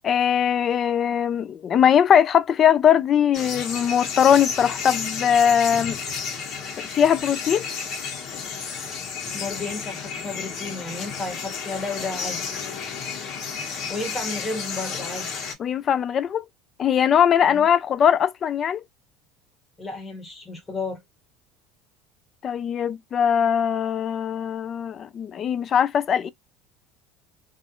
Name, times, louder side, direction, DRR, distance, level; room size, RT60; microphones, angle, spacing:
voice 1, 0.0-6.0 6.8-7.7 15.6-16.4 16.8-18.8 22.4-26.3, left 8 dB, 35° left, 0.3 m, -20 dB
sound 1, 3.3-15.5, left 6 dB, 50° left, 1.1 m, -32 dB
voice 2, 9.3-12.4 13.9-15.3 17.4-17.7 19.8-21.0, left 3 dB, 15° left, 1.0 m, -32 dB
2.4 x 2.0 x 2.8 m
cardioid pair, 140°, 0 cm